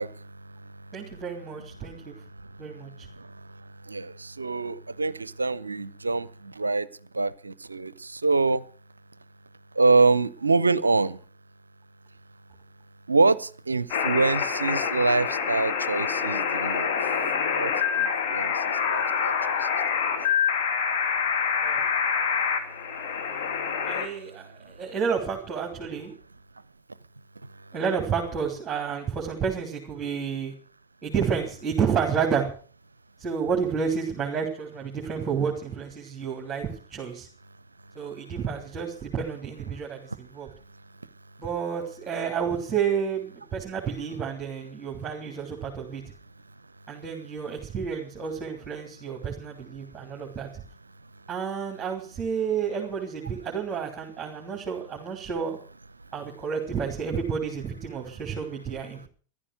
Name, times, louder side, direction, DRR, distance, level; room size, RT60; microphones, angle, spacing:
voice 1, 0.0-0.7 1.0-1.2 1.8-2.1 2.4-2.7 3.1-6.9 7.1-8.6 9.7-11.2 13.1-16.9 17.5-19.7 24.4-24.7, right 3 dB, 80° right, 20 dB, 0.6 m, -26 dB
voice 2, 0.9-2.2 2.6-3.1 21.6-21.9 23.8-26.1 27.7-30.5 31.0-32.5 33.2-37.3 37.9-40.5 41.4-46.0 46.9-50.6 51.3-55.6 56.1-59.1, right 6 dB, 20° right, 0 dB, 3.2 m, -30 dB
sound 1, 13.9-24.1, left 7 dB, 50° left, 2.6 m, -26 dB
14.0 x 12.0 x 6.5 m, 0.42 s
figure-of-eight pair, 90°, 0 cm